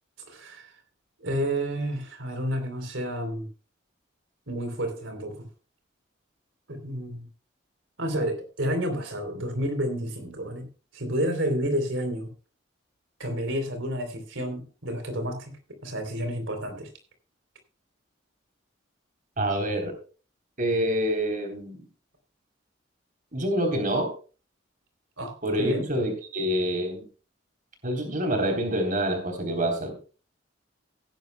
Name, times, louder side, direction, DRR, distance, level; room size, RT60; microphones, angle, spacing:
voice 1, 0.3-0.7 1.2-3.5 4.5-5.5 6.7-7.3 8.0-10.7 10.9-12.3 13.2-15.5 15.8-16.9 25.2-25.9, equal, 90° right, 6 dB, 3.4 m, -30 dB
voice 2, 19.4-20.0 20.6-21.8 23.3-24.1 25.4-27.1 27.8-30.0, right 1 dB, 45° right, 4 dB, 3.6 m, -26 dB
17.0 x 11.0 x 2.2 m, 0.35 s
head